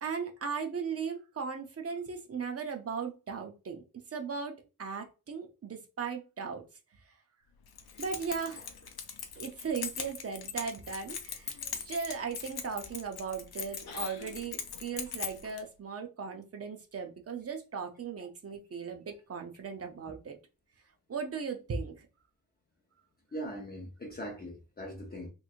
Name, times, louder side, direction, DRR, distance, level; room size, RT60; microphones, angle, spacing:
voice 1, 0.0-6.6 8.0-8.7 9.4-20.4 21.1-22.1, right 5 dB, 40° right, 0.6 m, -37 dB
Keys jangling, 7.7-15.6, left 7 dB, 80° left, 0.7 m, -41 dB
voice 2, 23.3-25.3, equal, 25° left, 0.7 m, -40 dB
3.3 x 3.0 x 2.4 m
wide cardioid pair, 150°, 37 cm